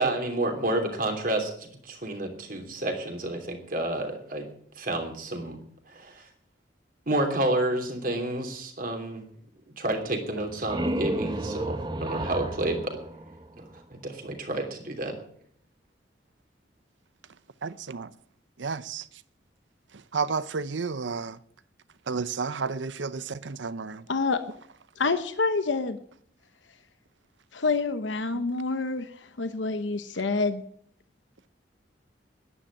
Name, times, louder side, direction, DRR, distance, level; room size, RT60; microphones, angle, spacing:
voice 1, 0.0-4.5 4.8-5.6 5.9-6.3 7.1-9.2 9.8-13.0 13.6-13.7 14.0-15.1, right 1 dB, 50° right, 3.0 m, -30 dB
sound 1, 10.3-14.0, right 1 dB, 25° right, 1.0 m, -33 dB
voice 2, 17.6-18.1 18.6-19.0 20.1-21.4 22.1-24.0 28.3-28.4, right 4 dB, 85° right, 0.7 m, -31 dB
voice 3, 24.1-24.4 25.0-26.0 27.5-29.1 29.4-30.6, left 3 dB, 85° left, 0.9 m, -27 dB
11.0 x 10.5 x 8.7 m
head